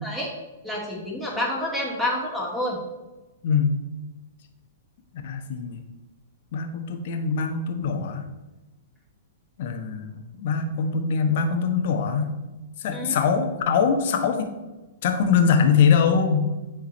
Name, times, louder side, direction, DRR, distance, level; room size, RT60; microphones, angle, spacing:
voice 1, 0.6-2.8 12.9-13.1, left 1 dB, ahead, -5 dB, 2.3 m, -28 dB
voice 2, 5.2-5.8 6.5-8.2 9.6-12.3 12.8-14.5 15.0-16.5, left 6 dB, 55° left, 5 dB, 1.0 m, -22 dB
9.7 x 3.8 x 4.2 m, 1.1 s
figure-of-eight pair, 110°, 0 cm